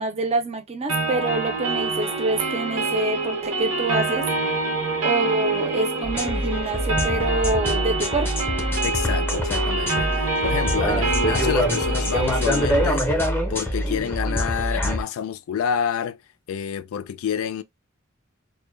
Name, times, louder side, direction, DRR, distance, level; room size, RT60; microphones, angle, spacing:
voice 1, 0.0-4.3 5.0-8.3, right 2 dB, 30° right, 0.5 m, -26 dB
sound 1, 0.9-12.9, right 2 dB, 70° right, 0.8 m, -26 dB
sound 2, 6.0-15.0, equal, 10° left, 0.6 m, -25 dB
voice 2, 8.8-13.1 13.5-16.2 16.5-17.6, left 8 dB, 80° left, 0.3 m, -28 dB
2.1 x 2.1 x 3.0 m
head